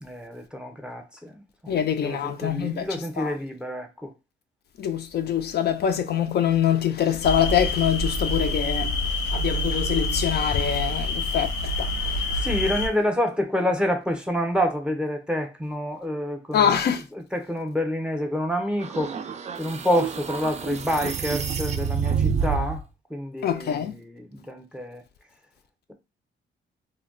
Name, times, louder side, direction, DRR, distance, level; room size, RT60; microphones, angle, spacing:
voice 1, 0.0-4.1 12.3-16.8 17.1-19.1 19.6-22.8 23.1-25.0, equal, 5° right, 0.7 m, -28 dB
voice 2, 1.7-2.9 3.2-3.3 4.8-12.2 16.5-17.0 23.4-23.9, left 9 dB, 55° left, 0.4 m, -24 dB
sound 1, 7.2-12.9, left 1 dB, 90° left, 0.9 m, -27 dB
sound 2, 18.8-22.8, right 6 dB, 35° right, 0.4 m, -28 dB
2.2 x 2.1 x 3.7 m
cardioid pair, 90°, 20 cm